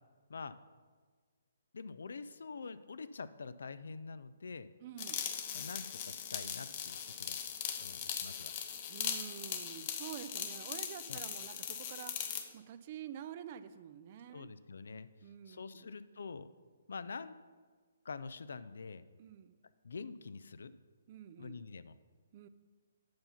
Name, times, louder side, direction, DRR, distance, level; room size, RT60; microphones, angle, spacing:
voice 1, 1.7-4.7 5.5-7.4 7.8-8.5 11.1-11.2 14.3-15.1 15.5-16.5 16.9-17.3 18.0-19.0 19.8-20.7 21.4-21.9, left 4 dB, 65° left, 14 dB, 0.4 m, -46 dB
voice 2, 4.8-5.2 8.9-12.1 12.5-14.5 15.2-15.9 19.2-19.5 21.1-21.6 22.3-22.5, right 10 dB, 40° right, 12 dB, 0.4 m, -48 dB
sound 1, 5.0-12.5, left 8 dB, 35° left, 0.8 m, -40 dB
7.8 x 5.6 x 5.6 m, 1.5 s
figure-of-eight pair, 135°, 0 cm